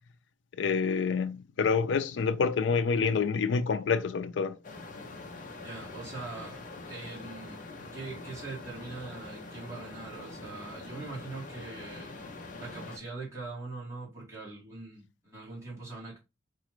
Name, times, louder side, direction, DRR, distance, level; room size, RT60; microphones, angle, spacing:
voice 1, 0.6-4.5, left 5 dB, 85° left, 0.4 m, -27 dB
sound 1, 4.6-13.0, left 3 dB, 45° left, 0.6 m, -44 dB
voice 2, 5.6-6.6 6.9-7.6 7.9-12.1 12.6-16.2, right 3 dB, 15° right, 1.8 m, -42 dB
4.0 x 2.4 x 2.9 m
head